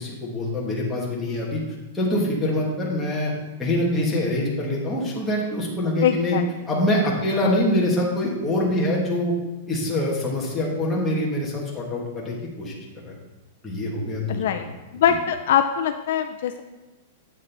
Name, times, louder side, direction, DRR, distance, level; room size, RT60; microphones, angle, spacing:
voice 1, 0.0-1.6 1.9-3.3 3.6-6.4 6.7-9.3 9.7-12.7 13.0-13.1 13.6-14.4, left 1 dB, 5° left, -5 dB, 1.2 m, -24 dB
voice 2, 6.0-6.4 7.4-7.6 14.3-14.7 14.9-16.6, left 9 dB, 55° left, 7 dB, 0.4 m, -22 dB
8.3 x 6.6 x 3.3 m, 1.1 s
supercardioid pair, 180°, 0 cm